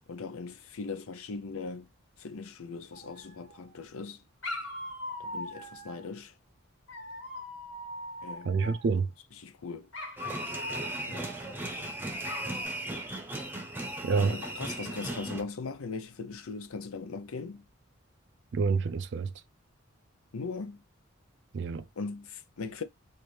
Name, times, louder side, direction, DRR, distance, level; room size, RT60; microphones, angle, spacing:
voice 1, 0.1-1.9 2.2-4.2 5.2-6.3 8.2-8.8 9.4-9.9 11.1-11.3 14.2-17.6 20.3-20.8 22.0-22.8, left 4 dB, 80° left, 0.6 m, -39 dB
Dog, 2.9-3.7 4.4-6.1 6.9-9.0 9.9-11.8 12.2-12.7, left 1 dB, 60° left, 2.2 m, -41 dB
voice 2, 8.4-9.1 14.0-14.4 18.5-19.3 21.5-21.9, right 4 dB, 55° right, 0.3 m, -27 dB
sound 1, 10.2-15.4, right 1 dB, 10° right, 0.8 m, -37 dB
4.4 x 2.6 x 3.2 m
head